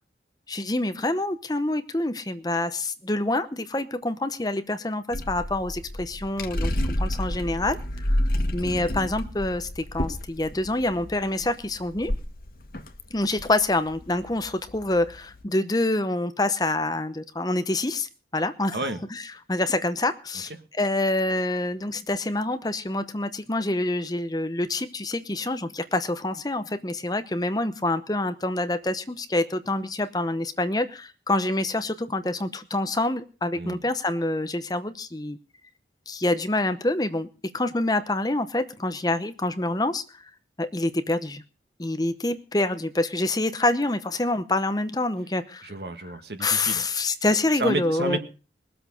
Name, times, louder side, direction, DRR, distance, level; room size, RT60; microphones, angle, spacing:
voice 1, 0.5-8.2 8.5-12.1 13.1-18.8 19.1-19.2 19.5-35.4 36.1-37.3 37.5-40.0 40.6-41.4 41.8-45.7 46.4-48.2, left 2 dB, 20° left, 10 dB, 0.9 m, -26 dB
sound 1, 5.1-15.4, left 1 dB, 50° left, 1.3 m, -30 dB
voice 2, 45.6-46.8 47.5-48.2, right 2 dB, 70° right, 7 dB, 1.8 m, -30 dB
21.0 x 7.9 x 6.5 m, 0.36 s
head